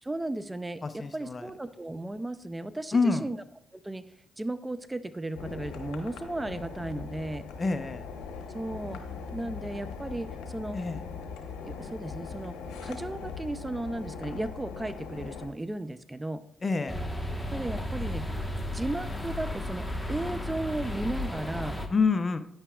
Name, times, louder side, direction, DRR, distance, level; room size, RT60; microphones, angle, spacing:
voice 1, 0.0-3.4 3.7-4.0 4.4-7.5 8.5-9.0 9.3-10.8 11.7-12.6 12.8-16.4 17.5-18.4 18.7-21.8, right 1 dB, 15° right, 13 dB, 0.5 m, -35 dB
voice 2, 0.8-1.5 2.9-3.3 7.6-8.0 10.7-11.0 16.6-17.0 21.9-22.4, left 4 dB, 40° left, 10 dB, 0.7 m, -27 dB
sound 1, 5.3-15.5, left 5 dB, 90° left, 1.0 m, -40 dB
sound 2, 16.9-21.9, left 1 dB, 10° left, 1.3 m, -34 dB
9.6 x 8.8 x 2.4 m, 0.70 s
supercardioid pair, 60°, 0 cm